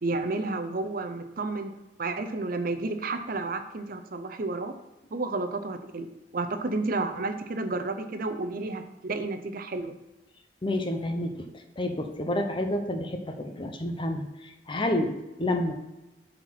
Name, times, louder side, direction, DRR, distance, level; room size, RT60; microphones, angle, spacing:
voice 1, 0.0-1.7 2.0-4.8 5.1-9.9, right 3 dB, 55° right, 9 dB, 0.7 m, -31 dB
voice 2, 10.6-11.4 11.8-14.3 14.7-15.7, left 1 dB, 30° left, 6 dB, 0.9 m, -29 dB
8.0 x 4.5 x 5.8 m, 1.0 s
head